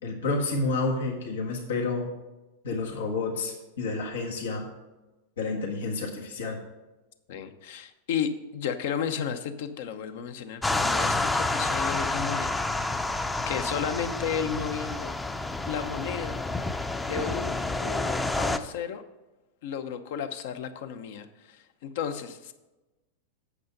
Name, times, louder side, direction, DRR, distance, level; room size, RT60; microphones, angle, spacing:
voice 1, 0.0-2.1 2.6-4.6 5.4-6.6, left 3 dB, 90° left, 0 dB, 1.5 m, -30 dB
voice 2, 7.3-13.0 13.5-15.1 15.7-16.4 17.0-17.6 17.8-19.0 19.6-22.5, left 7 dB, 70° left, 9 dB, 0.8 m, -33 dB
sound 1, 10.6-18.6, left 2 dB, 10° left, 0.5 m, -29 dB
8.5 x 6.7 x 5.3 m, 1.1 s
hypercardioid pair, 120°, 0 cm